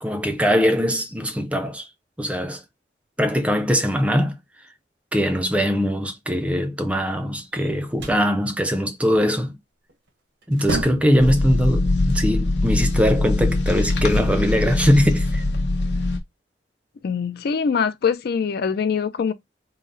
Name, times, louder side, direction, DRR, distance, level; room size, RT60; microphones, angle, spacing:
voice 1, 0.0-1.9 2.2-2.6 3.2-4.4 5.1-9.6 10.5-15.4, equal, 10° right, 0.5 m, -21 dB
sound 1, 7.5-8.3 9.9-10.1 10.4-11.3, right 2 dB, 80° right, 0.9 m, -30 dB
sound 2, 11.2-16.2, left 2 dB, 75° left, 0.9 m, -22 dB
voice 2, 17.0-19.3, left 6 dB, 60° left, 0.4 m, -23 dB
3.9 x 2.0 x 3.7 m
head